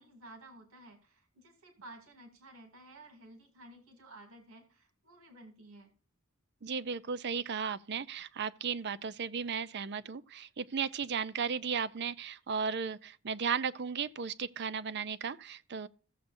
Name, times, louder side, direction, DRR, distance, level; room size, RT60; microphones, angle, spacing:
voice 1, 0.0-6.0, right 1 dB, 85° right, 2.6 m, -54 dB
voice 2, 6.6-15.9, right 6 dB, 55° right, 0.5 m, -35 dB
15.0 x 7.6 x 2.6 m
head